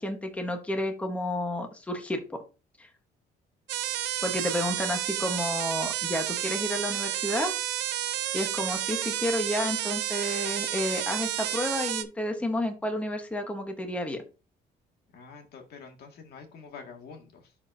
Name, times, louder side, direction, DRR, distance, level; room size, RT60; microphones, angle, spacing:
voice 1, 0.0-2.4 2.8-2.9 4.2-7.5 8.3-14.2, left 1 dB, 10° left, 4 dB, 1.1 m, -31 dB
sound 1, 3.7-12.0, right 13 dB, 85° right, 0.7 m, -31 dB
voice 2, 15.1-17.6, left 5 dB, 70° left, 3 dB, 1.9 m, -47 dB
11.5 x 4.3 x 2.7 m, 0.32 s
cardioid pair, 130°, 17 cm